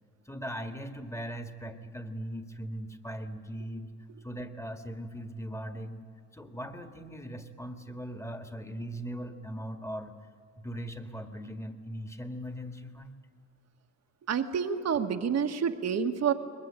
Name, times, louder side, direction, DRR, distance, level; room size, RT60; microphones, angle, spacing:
voice 1, 0.3-3.9 4.2-6.0 6.3-10.1 10.6-13.1, equal, 10° left, 6 dB, 1.8 m, -39 dB
voice 2, 14.3-16.3, right 7 dB, 60° right, 7 dB, 1.6 m, -28 dB
22.0 x 21.0 x 8.8 m, 2.1 s
cardioid pair, 90°, 30 cm